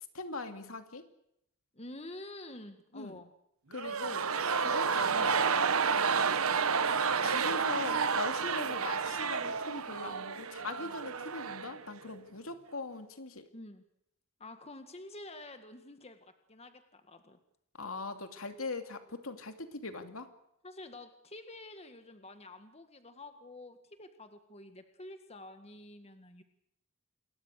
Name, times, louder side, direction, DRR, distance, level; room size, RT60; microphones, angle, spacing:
voice 1, 0.1-1.1 2.9-3.2 3.7-4.3 4.6-5.4 7.2-13.5 17.8-20.3, left 3 dB, 75° left, 7 dB, 2.7 m, -41 dB
voice 2, 1.7-3.3 13.5-13.8 14.4-17.4 20.6-26.4, left 2 dB, 30° left, 7 dB, 1.9 m, -48 dB
sound 1, 3.7-11.8 12.1-12.2, right 5 dB, 80° right, 1.2 m, -30 dB
28.0 x 21.5 x 6.7 m, 0.76 s
head